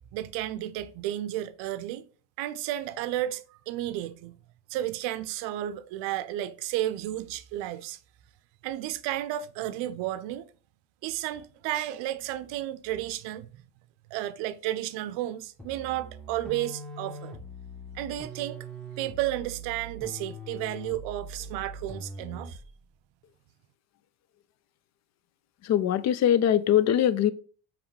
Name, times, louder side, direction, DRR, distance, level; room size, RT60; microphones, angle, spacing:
voice 1, 0.1-2.1 2.4-4.4 4.7-8.0 8.6-10.5 11.0-13.6 14.1-17.3 17.9-18.6 19.0-22.6, right 13 dB, 70° right, 0.6 m, -32 dB
sound 1, 15.6-22.7, right 1 dB, ahead, 1.2 m, -42 dB
voice 2, 25.6-27.3, left 10 dB, 40° left, 0.4 m, -22 dB
4.9 x 3.1 x 3.1 m
supercardioid pair, 85°, 45 cm